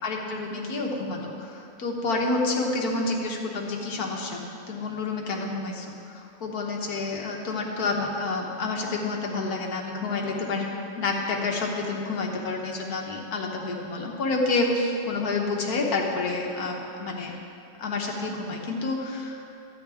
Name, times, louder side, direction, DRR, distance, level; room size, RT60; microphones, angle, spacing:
voice 1, 0.0-5.9 6.1-10.7 11.0-17.4 17.8-19.6, left 3 dB, 85° left, 0 dB, 1.7 m, -29 dB
14.5 x 9.7 x 3.5 m, 2.5 s
omnidirectional pair, 1.6 m